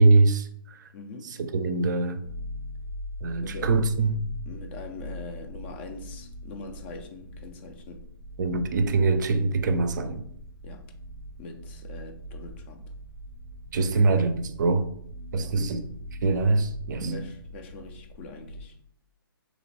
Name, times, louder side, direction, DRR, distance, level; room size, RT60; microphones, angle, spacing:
voice 1, 0.0-0.9 1.2-2.2 3.2-4.2 8.4-10.2 13.7-14.9 15.3-15.9 16.2-17.3, right 3 dB, 50° right, 0.4 m, -23 dB
voice 2, 0.9-1.3 3.4-3.7 4.5-8.0 10.6-10.8 11.4-12.9 15.3-15.6 17.1-18.8, left 3 dB, 30° left, 0.4 m, -43 dB
sound 1, 2.2-18.6, equal, 90° left, 1.5 m, -41 dB
3.0 x 2.2 x 4.0 m
figure-of-eight pair, 135°, 12 cm